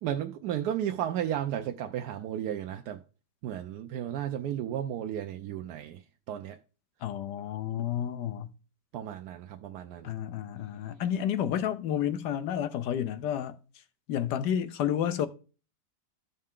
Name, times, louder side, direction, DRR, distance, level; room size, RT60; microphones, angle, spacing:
voice 1, 0.0-3.0 3.4-6.0 6.3-6.6 8.9-10.1, right 10 dB, 75° right, 1.1 m, -33 dB
voice 2, 7.0-8.5 10.0-13.6 14.1-15.3, left 10 dB, 85° left, 1.3 m, -30 dB
13.0 x 5.5 x 3.7 m
omnidirectional pair, 1.8 m